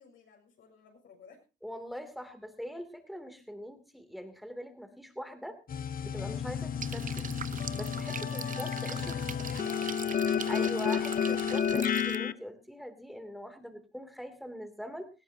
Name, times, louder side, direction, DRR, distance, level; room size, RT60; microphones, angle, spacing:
voice 1, 0.0-1.4 8.1-9.9, left 6 dB, 70° left, 1 dB, 6.8 m, -54 dB
voice 2, 1.6-5.6 6.0-7.2 7.7-9.2 10.5-15.1, equal, ahead, 7 dB, 2.8 m, -42 dB
sound 1, 5.7-12.3, left 8 dB, 45° left, 0.8 m, -31 dB
sound 2, 6.8-12.2, right 8 dB, 40° right, 0.7 m, -42 dB
19.0 x 16.5 x 2.8 m, 0.31 s
cardioid pair, 90°, 20 cm